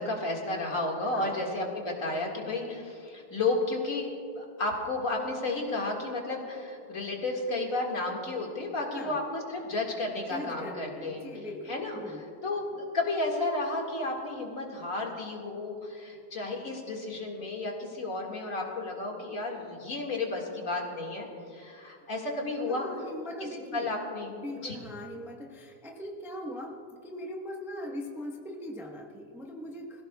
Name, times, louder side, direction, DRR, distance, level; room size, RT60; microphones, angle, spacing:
voice 1, 0.0-4.1 4.4-11.2 11.7-12.0 12.4-22.9 23.7-24.3 24.6-24.8, left 2 dB, 40° left, -1 dB, 2.2 m, -32 dB
voice 2, 10.1-12.2 22.7-23.9 24.3-30.0, left 1 dB, 5° right, 0 dB, 0.3 m, -40 dB
23.5 x 16.0 x 2.3 m, 2.5 s
omnidirectional pair, 2.4 m